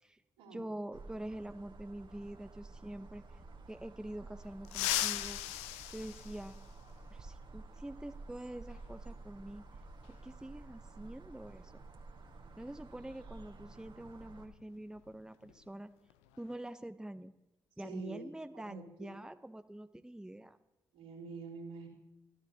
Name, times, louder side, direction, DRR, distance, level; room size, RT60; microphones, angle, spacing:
voice 1, 0.5-3.2 3.7-5.4 5.9-6.6 7.1-9.6 10.2-11.8 12.5-15.9 16.4-17.3 17.8-20.6, right 1 dB, 5° right, 10 dB, 0.8 m, -45 dB
sound 1, 0.9-14.5, right 3 dB, 50° right, 1.6 m, -52 dB
sound 2, 4.6-7.1 8.7-8.8 10.0-10.1 11.8-11.9 12.3-12.5 13.0-15.2 15.4-15.7 16.1-16.5, left 13 dB, 85° left, 0.5 m, -39 dB
voice 2, 17.8-18.2 18.5-19.1 20.9-21.9, right 4 dB, 90° right, -6 dB, 3.6 m, -46 dB
25.5 x 12.0 x 2.8 m, 1.0 s
hypercardioid pair, 45°, 11 cm